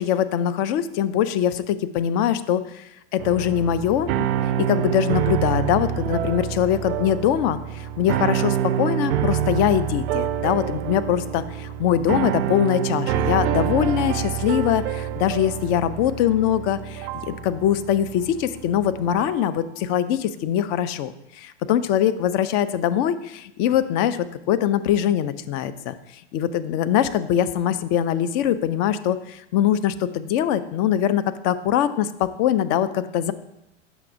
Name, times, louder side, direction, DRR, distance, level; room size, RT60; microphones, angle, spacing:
voice 1, 0.0-25.9 26.3-33.3, left 10 dB, 35° left, 13 dB, 0.4 m, -23 dB
sound 1, 3.2-19.4, right 10 dB, 55° right, 0.5 m, -27 dB
7.2 x 5.9 x 2.6 m, 0.83 s
hypercardioid pair, 100°, 36 cm